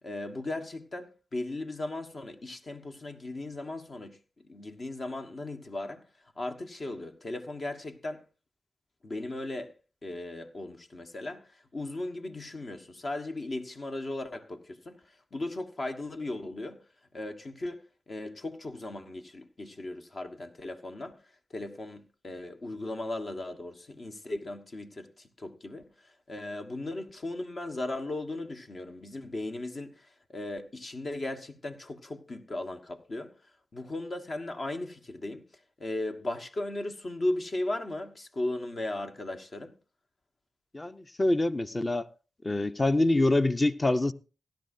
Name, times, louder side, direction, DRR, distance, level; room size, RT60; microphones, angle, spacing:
voice 1, 0.0-6.1 6.4-8.2 9.0-9.7 10.0-16.8 17.1-21.2 21.5-33.3 33.7-35.5 35.8-39.8, left 2 dB, 50° left, 1.3 m, -37 dB
voice 2, 40.7-42.1 42.4-44.1, left 2 dB, 30° left, 0.7 m, -25 dB
16.5 x 11.5 x 2.6 m
cardioid pair, 50°, 0 cm